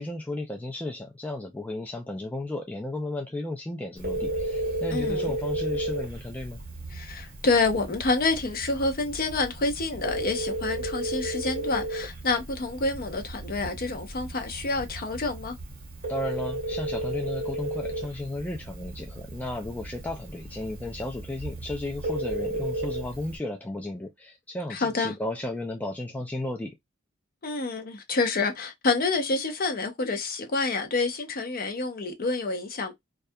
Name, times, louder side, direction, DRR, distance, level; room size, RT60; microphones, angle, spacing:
voice 1, 0.0-6.6 16.1-26.7, left 1 dB, 10° left, 0.3 m, -34 dB
Telephone, 4.0-23.4, right 1 dB, 45° right, 0.9 m, -34 dB
voice 2, 4.9-5.3 6.9-15.6 24.7-25.1 27.4-32.9, left 3 dB, 45° left, 0.6 m, -28 dB
2.3 x 2.2 x 2.6 m
head